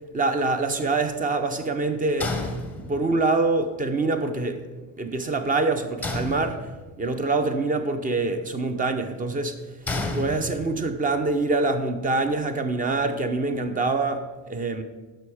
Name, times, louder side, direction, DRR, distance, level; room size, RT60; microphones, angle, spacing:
voice 1, 0.1-2.4 2.8-6.7 7.0-9.6 10.1-14.8, right 3 dB, 25° right, 0.7 m, -25 dB
sound 1, 2.2-3.3 6.0-7.0 9.9-11.0, left 2 dB, 5° left, 0.8 m, -31 dB
10.5 x 6.3 x 4.9 m
cardioid pair, 165°, 35 cm